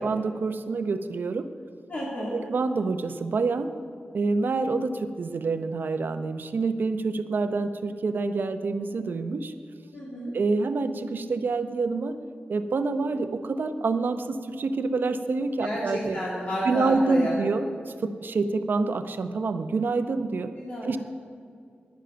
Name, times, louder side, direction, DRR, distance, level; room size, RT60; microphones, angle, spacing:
voice 1, 0.0-1.5 2.3-3.7 4.1-9.5 10.3-12.1 12.5-16.2 16.6-20.5 20.8-21.0, right 3 dB, 65° right, 10 dB, 0.7 m, -27 dB
voice 2, 1.9-2.4 9.9-10.3 15.6-17.4 20.6-21.0, equal, 35° left, -5 dB, 2.1 m, -30 dB
10.5 x 10.5 x 6.8 m, 2.3 s
wide cardioid pair, 110°, 4 cm